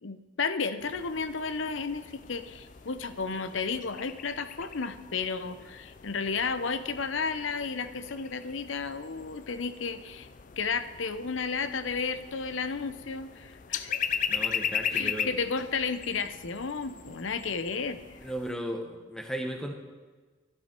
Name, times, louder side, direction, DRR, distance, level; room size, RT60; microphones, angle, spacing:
voice 1, 0.0-10.3 10.6-14.2 14.9-18.0, left 5 dB, 75° left, 12 dB, 0.8 m, -33 dB
sound 1, 0.8-18.5, left 8 dB, 40° left, 0.4 m, -38 dB
voice 2, 14.3-15.3 18.2-19.8, right 1 dB, 5° left, 3 dB, 1.0 m, -35 dB
12.5 x 11.5 x 4.5 m, 1.3 s
head